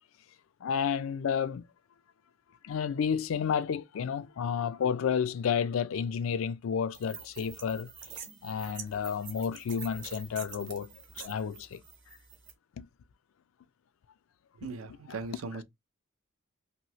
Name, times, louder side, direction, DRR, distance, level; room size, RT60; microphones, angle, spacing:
voice 1, 0.6-1.6 2.6-7.9 8.4-10.9 11.2-11.8 12.8-12.9 14.6-15.2 15.5-15.6, left 7 dB, 80° left, 0.3 m, -31 dB
sound 1, 6.9-12.5, right 8 dB, 55° right, 0.9 m, -46 dB
voice 2, 14.6-15.6, right 4 dB, 85° right, 0.5 m, -39 dB
3.0 x 2.7 x 2.9 m
head